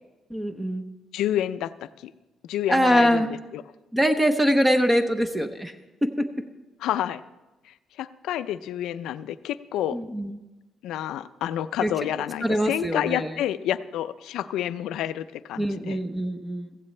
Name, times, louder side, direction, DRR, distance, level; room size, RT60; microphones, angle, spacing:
voice 1, 0.3-0.9 2.7-3.3 3.9-5.7 6.0-6.3 9.9-10.4 11.8-11.9 12.4-13.4 15.6-16.8, equal, 10° right, 6 dB, 0.9 m, -23 dB
voice 2, 1.1-2.1 2.5-3.3 3.5-3.6 6.8-7.2 8.0-10.0 10.8-16.0, left 11 dB, 85° left, 13 dB, 0.5 m, -29 dB
15.5 x 15.5 x 3.3 m, 1.1 s
cardioid pair, 95°, 0 cm